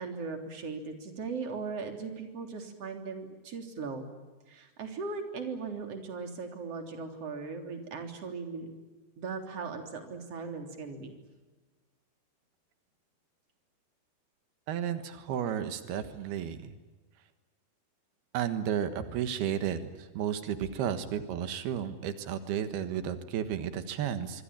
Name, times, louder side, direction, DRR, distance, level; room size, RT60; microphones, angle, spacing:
voice 1, 0.0-4.1 4.5-8.7 9.2-11.1, right 4 dB, 40° right, 5 dB, 4.2 m, -38 dB
voice 2, 14.7-16.7 18.3-24.4, right 9 dB, 85° right, 10 dB, 3.4 m, -33 dB
26.0 x 24.5 x 8.9 m, 1.2 s
omnidirectional pair, 4.4 m